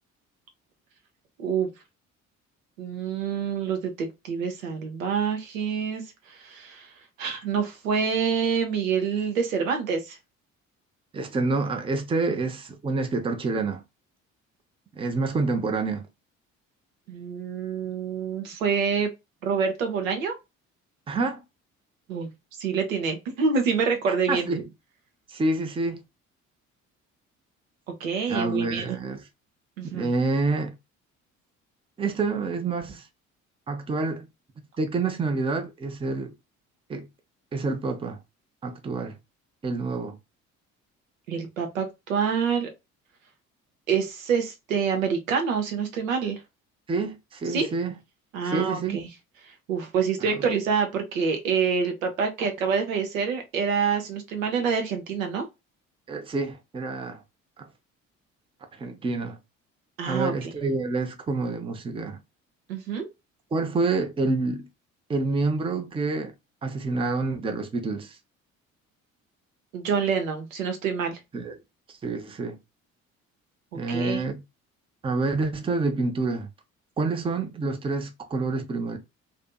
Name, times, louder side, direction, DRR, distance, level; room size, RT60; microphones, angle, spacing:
voice 1, 1.4-1.7 2.8-6.0 6.3-6.9 7.2-10.2 17.1-19.1 19.4-20.3 22.1-22.3 22.6-24.5 27.9-28.9 29.8-30.1 41.3-42.7 43.9-46.4 47.5-47.7 48.3-49.0 49.5-55.5 60.0-60.5 62.7-63.1 69.7-71.2 73.7-74.2, right 6 dB, 80° right, 0.6 m, -27 dB
voice 2, 11.1-13.8 14.9-16.0 21.1-21.4 24.1-24.7 25.3-26.0 28.3-29.3 29.8-30.8 32.0-33.1 33.7-34.3 34.8-36.3 36.9-37.1 37.5-38.2 38.6-39.2 39.6-40.2 46.9-47.9 48.4-49.1 50.2-50.5 56.1-57.2 57.6-57.7 58.7-59.4 60.1-62.2 63.5-64.6 65.1-66.3 66.6-68.2 71.3-71.6 71.9-72.6 73.7-74.4 75.0-76.5 77.0-79.0, right 3 dB, 15° right, 0.5 m, -28 dB
2.5 x 2.5 x 2.2 m
figure-of-eight pair, 50°, 40 cm